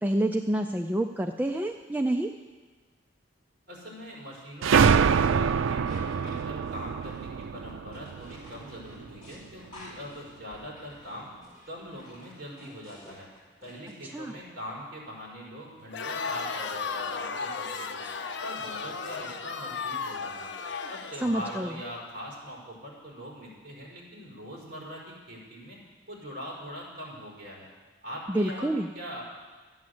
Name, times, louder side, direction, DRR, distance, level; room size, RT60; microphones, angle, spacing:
voice 1, 0.0-2.3 14.0-14.3 21.2-21.7 28.3-28.9, right 1 dB, 10° right, 4 dB, 0.3 m, -28 dB
voice 2, 3.7-11.3 11.7-13.3 13.6-18.1 18.4-20.5 20.9-25.8 26.1-27.7 28.0-29.2, equal, 50° right, -4 dB, 4.8 m, -42 dB
sound 1, 4.6-9.1, right 6 dB, 90° right, 0.4 m, -25 dB
sound 2, 5.9-14.1, left 1 dB, 25° left, 4.4 m, -52 dB
Crowd, 15.9-22.1, left 5 dB, 65° left, 0.7 m, -35 dB
12.5 x 9.5 x 7.8 m, 1.4 s
head